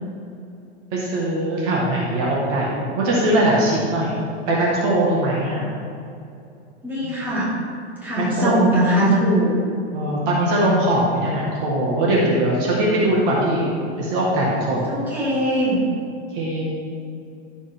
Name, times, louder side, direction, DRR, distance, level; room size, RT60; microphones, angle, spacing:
voice 1, 0.9-4.2 4.5-5.7 7.0-7.1 8.2-8.5 9.9-13.7 14.0-14.8 16.3-16.6, right 1 dB, 30° right, -4 dB, 1.4 m, -21 dB
voice 2, 6.8-7.5 8.0-9.5 14.9-15.8, right 1 dB, 5° right, -8 dB, 1.7 m, -20 dB
14.0 x 5.0 x 3.5 m, 2.5 s
supercardioid pair, 175°, 35 cm